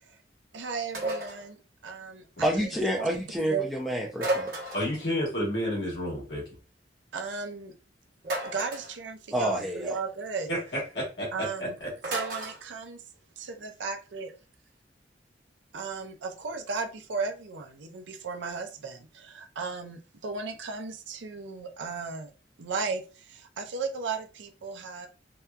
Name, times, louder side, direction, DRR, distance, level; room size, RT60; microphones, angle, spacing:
voice 1, 0.5-2.7 3.0-3.1 3.5-3.7 7.1-7.7 8.4-10.5 11.3-11.8 12.1-13.0 13.6-14.3 15.7-22.3 22.6-25.1, right 4 dB, 85° right, 5 dB, 0.5 m, -35 dB
sound 1, 0.9-1.4 4.2-5.0 8.2-8.9 12.0-12.6, right 2 dB, 55° right, 0.8 m, -32 dB
voice 2, 2.4-4.5 9.3-9.9, equal, ahead, -3 dB, 0.3 m, -28 dB
voice 3, 4.7-6.4 10.5-11.5 11.8-11.9, equal, 75° left, -4 dB, 1.1 m, -30 dB
2.7 x 2.2 x 2.3 m, 0.35 s
head